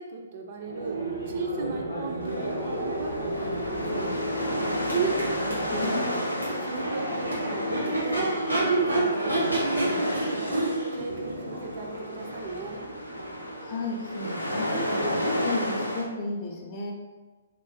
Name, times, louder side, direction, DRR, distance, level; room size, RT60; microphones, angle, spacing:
voice 1, 0.0-4.2 4.7-5.9 6.6-8.3 8.6-10.6 10.9-12.9, right 5 dB, 40° right, 2 dB, 0.3 m, -34 dB
Crowd / Race car auto racing / Accelerating revving vroom, 0.6-14.4, right 1 dB, 90° right, 1.0 m, -31 dB
sound 1, 2.1-16.3, left 2 dB, 65° right, 0.7 m, -42 dB
sound 2, 2.2-16.0, equal, 85° left, 0.4 m, -32 dB
voice 2, 5.7-6.1 13.3-16.9, left 2 dB, 30° left, 0 dB, 0.5 m, -33 dB
3.0 x 2.1 x 3.2 m, 1.3 s
figure-of-eight pair, 125°, 0 cm